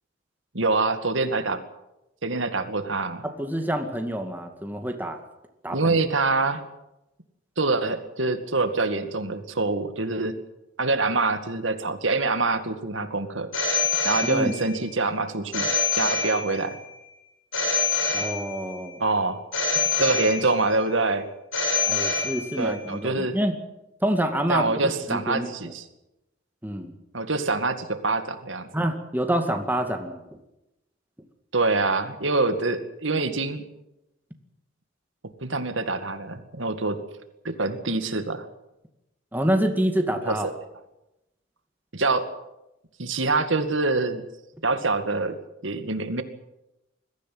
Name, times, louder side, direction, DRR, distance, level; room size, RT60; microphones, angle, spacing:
voice 1, 0.5-1.6 2.2-3.2 5.7-6.6 7.6-10.4 10.8-13.5 14.0-16.8 19.0-19.4 20.0-21.3 22.6-23.3 24.5-25.8 27.1-28.8 31.5-33.6 35.4-37.0 37.4-38.5 40.2-40.5 41.9-42.3 43.0-44.2 44.6-45.4 45.6-46.2, right 3 dB, 75° right, 9 dB, 2.1 m, -25 dB
voice 2, 3.2-5.2 5.6-5.9 14.2-14.5 18.1-19.0 21.9-23.5 24.0-25.7 26.6-26.9 28.7-30.2 39.3-40.5, right 1 dB, 10° right, 4 dB, 2.1 m, -27 dB
Telephone, 13.5-14.8 15.5-16.8 17.5-18.8 19.5-20.8 21.5-22.8, left 4 dB, 75° left, 7.9 m, -26 dB
22.0 x 15.0 x 9.4 m, 0.92 s
head